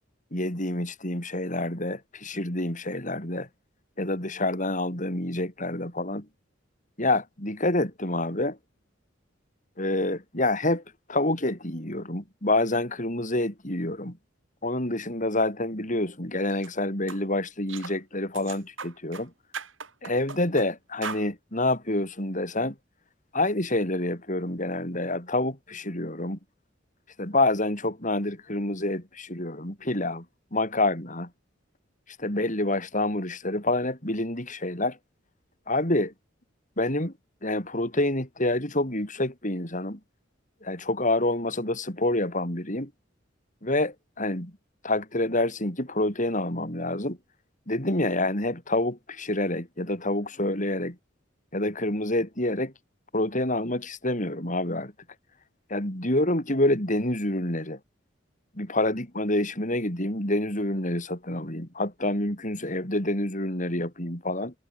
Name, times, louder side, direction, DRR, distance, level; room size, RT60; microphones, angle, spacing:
voice 1, 0.3-3.5 4.0-6.3 7.0-8.6 9.8-10.8 11.1-14.2 14.6-19.3 20.0-22.7 23.3-26.4 27.2-30.2 30.5-31.3 32.2-35.0 35.7-36.1 36.8-37.1 37.4-40.0 40.6-42.9 43.6-44.5 44.8-47.2 47.7-51.0 51.5-52.7 53.1-54.9 55.7-57.8 58.6-64.5, left 1 dB, 40° left, 7.6 m, -27 dB
sound 1, 16.5-16.7 17.1-17.2 17.7-18.0 18.3-19.3 19.5-20.7 21.0-21.3, right 5 dB, 85° right, 5.7 m, -38 dB
head